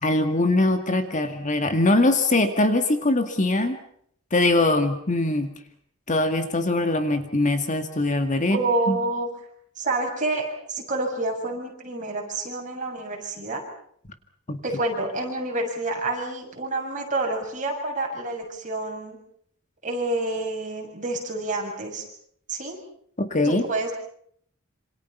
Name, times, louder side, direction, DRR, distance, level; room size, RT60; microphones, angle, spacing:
voice 1, 0.0-3.8 4.3-5.5 6.1-8.6 8.9-9.0 14.5-14.6 23.2-23.6, left 2 dB, 35° left, 7 dB, 2.1 m, -22 dB
voice 2, 8.5-9.3 9.8-13.6 14.6-19.2 19.8-22.0 22.5-22.8 23.4-23.9, right 2 dB, 35° right, 1 dB, 7.2 m, -28 dB
27.5 x 27.0 x 5.8 m, 0.65 s
head